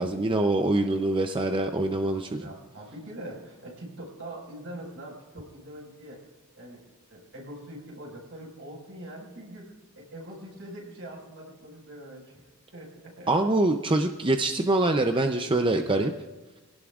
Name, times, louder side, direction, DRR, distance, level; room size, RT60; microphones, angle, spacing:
voice 1, 0.0-2.5 13.3-16.1, right 2 dB, 25° right, 5 dB, 0.6 m, -24 dB
voice 2, 2.4-6.2 6.5-12.4 12.7-13.5, right 1 dB, 65° right, -2 dB, 5.1 m, -43 dB
24.0 x 17.0 x 2.4 m, 1.2 s
head